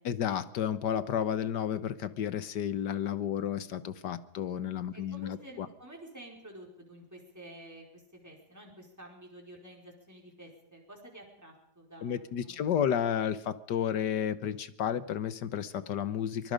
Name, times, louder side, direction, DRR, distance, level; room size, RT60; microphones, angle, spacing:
voice 1, 0.0-5.7 12.0-16.5, left 9 dB, 85° left, 13 dB, 1.7 m, -32 dB
voice 2, 4.9-7.8 8.1-12.6, right 1 dB, 10° right, -1 dB, 4.9 m, -50 dB
24.0 x 22.0 x 5.2 m, 0.76 s
omnidirectional pair, 1.8 m